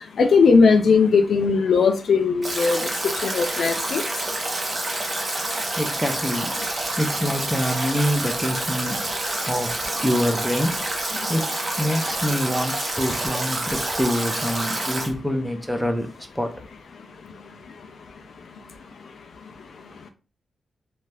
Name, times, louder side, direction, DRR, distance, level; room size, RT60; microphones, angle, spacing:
voice 1, 0.2-2.9 3.2-4.0, left 5 dB, 65° left, 0.5 m, -18 dB
Stream / Drip / Trickle dribble, 2.4-15.1, right 2 dB, 30° right, 0.8 m, -28 dB
voice 2, 5.8-6.5 7.0-9.0 9.5-10.8 11.3-11.5 11.8-16.1 16.4-16.5, equal, ahead, 0.5 m, -25 dB
2.7 x 2.3 x 3.2 m
wide cardioid pair, 125°, 0 cm